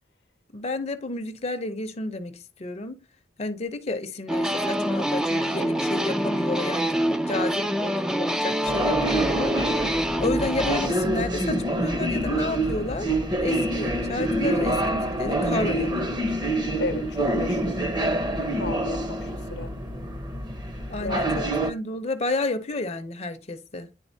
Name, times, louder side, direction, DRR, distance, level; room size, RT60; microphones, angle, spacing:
voice 1, 0.5-3.0 3.4-7.0 7.3-9.7 10.2-13.1 13.4-16.3 20.9-23.9, left 2 dB, 35° left, 0.7 m, -31 dB
sound 1, 4.3-10.9, equal, 5° right, 0.4 m, -25 dB
sound 2, 8.7-21.7, right 1 dB, 25° right, 0.8 m, -26 dB
voice 2, 16.8-17.9 18.6-19.7 21.0-21.5, left 3 dB, 65° left, 0.9 m, -34 dB
9.9 x 3.9 x 2.7 m
head